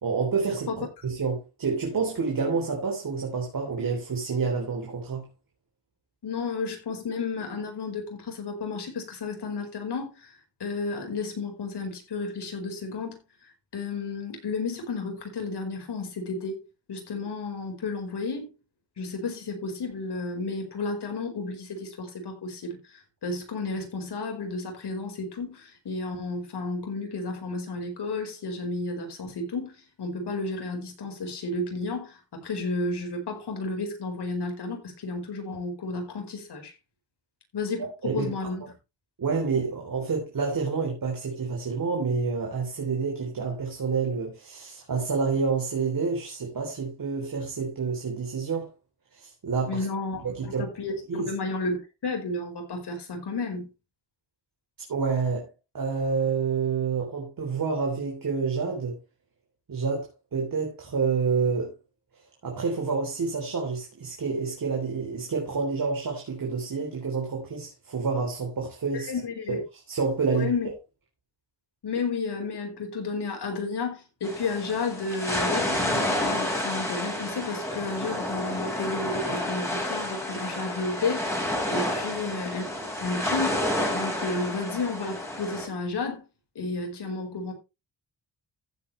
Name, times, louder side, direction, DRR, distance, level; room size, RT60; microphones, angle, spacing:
voice 1, 0.0-0.7 1.0-5.3 38.0-38.3 39.2-48.7 49.1-49.8 50.2-50.6 51.1-51.3 54.9-55.5 55.7-59.0 59.7-61.7 62.4-69.1 69.5-69.6 69.9-70.5, right 5 dB, 50° right, 3.6 m, -28 dB
voice 2, 6.2-13.2 13.7-16.6 16.9-18.5 19.0-29.7 30.0-36.7 37.5-38.6 49.7-51.8 52.0-53.7 68.9-69.6 70.3-70.7 71.8-81.5 81.7-82.7 83.0-83.6 83.9-86.2 86.5-87.5, left 3 dB, 65° left, 5.0 m, -32 dB
sound 1, 74.2-85.7, left 1 dB, 5° left, 5.3 m, -30 dB
15.0 x 8.4 x 3.3 m
wide cardioid pair, 125°, 43 cm